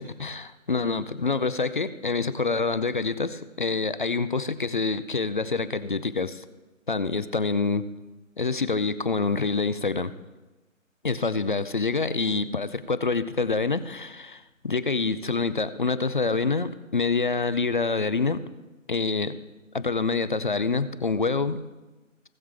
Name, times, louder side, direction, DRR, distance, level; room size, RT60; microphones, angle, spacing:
voice 1, 0.0-6.4 6.9-7.8 8.4-10.1 11.0-18.4 18.9-19.4 19.7-21.6, left 4 dB, 40° left, 14 dB, 0.5 m, -26 dB
18.5 x 7.2 x 3.5 m, 1.1 s
figure-of-eight pair, 145°, 40 cm